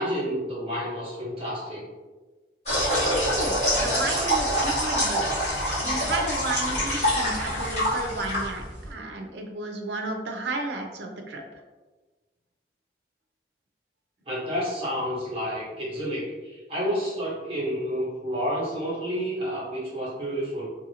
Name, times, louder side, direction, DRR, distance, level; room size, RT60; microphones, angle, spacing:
voice 1, 0.0-1.8 14.3-20.7, equal, 30° right, -7 dB, 1.1 m, -30 dB
sound 1, 2.7-8.9, equal, 40° left, 1.4 m, -25 dB
voice 2, 3.3-5.3 5.8-11.4, right 2 dB, 80° right, 3 dB, 0.5 m, -33 dB
2.7 x 2.6 x 2.7 m, 1.3 s
head